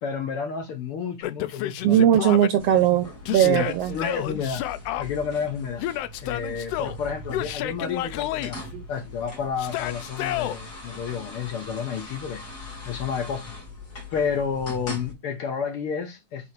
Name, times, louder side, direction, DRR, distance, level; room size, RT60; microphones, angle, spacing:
voice 1, 0.0-2.0 3.4-4.6 5.0-5.8 6.2-8.6 8.9-12.4 12.8-13.5 14.1-16.5, left 6 dB, 65° left, 1.5 m, -30 dB
Yell, 1.2-2.5 3.3-5.0 5.8-7.0 7.3-8.5 9.6-10.6, left 13 dB, 80° left, 1.4 m, -30 dB
voice 2, 1.8-3.9 8.7-8.8, right 11 dB, 75° right, 1.4 m, -19 dB
sound 1, 2.6-15.1, left 2 dB, 30° left, 2.1 m, -41 dB
8.4 x 3.6 x 3.2 m
omnidirectional pair, 3.3 m